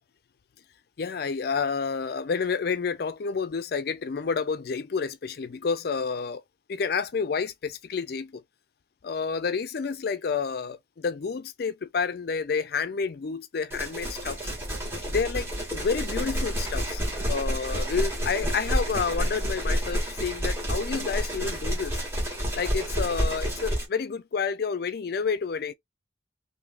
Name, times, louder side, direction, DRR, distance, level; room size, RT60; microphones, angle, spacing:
voice 1, 1.0-6.4 6.7-8.4 9.0-14.5 15.1-17.0 17.3-22.0 22.5-25.7, left 5 dB, 55° left, 0.4 m, -29 dB
sound 1, 13.7-23.9, equal, 15° right, 1.7 m, -29 dB
3.7 x 2.6 x 2.3 m
head